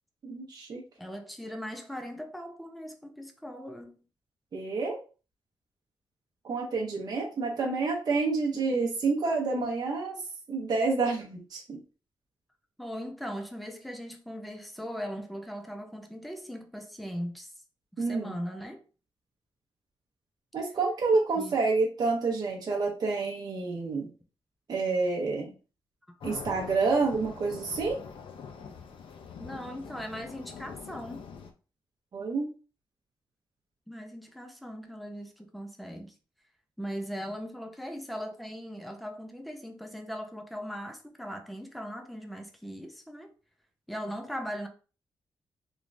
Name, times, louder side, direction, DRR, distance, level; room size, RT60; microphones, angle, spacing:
voice 1, 0.2-0.8 4.5-5.0 6.4-10.2 10.5-11.8 18.0-18.3 20.5-24.1 24.7-25.5 26.2-28.0 32.1-32.5, right 4 dB, 50° right, 0.8 m, -28 dB
voice 2, 1.0-3.9 12.8-17.5 18.0-18.8 21.4-21.5 26.1-26.2 29.4-31.3 33.9-36.1 36.8-43.3 43.9-44.7, equal, ahead, 0.5 m, -39 dB
sound 1, 26.2-31.5, left 6 dB, 80° left, 0.6 m, -44 dB
3.5 x 3.1 x 2.6 m
wide cardioid pair, 160°, 9 cm